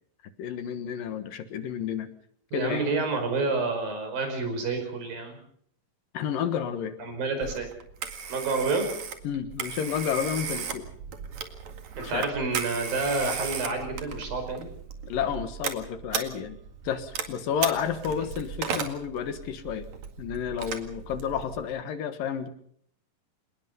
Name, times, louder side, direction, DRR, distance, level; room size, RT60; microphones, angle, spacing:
voice 1, 0.4-2.1 2.5-2.8 6.1-6.9 8.5-8.6 9.2-10.9 12.0-12.3 15.1-16.6 16.8-19.9 20.2-22.5, left 8 dB, 75° left, 10 dB, 3.1 m, -31 dB
voice 2, 2.5-5.4 7.0-7.7 8.3-8.9 12.0-14.7, right 3 dB, 80° right, 6 dB, 7.0 m, -29 dB
Telephone, 7.4-21.7, right 6 dB, 55° right, 3.2 m, -36 dB
27.5 x 19.5 x 5.5 m, 0.65 s
omnidirectional pair, 4.0 m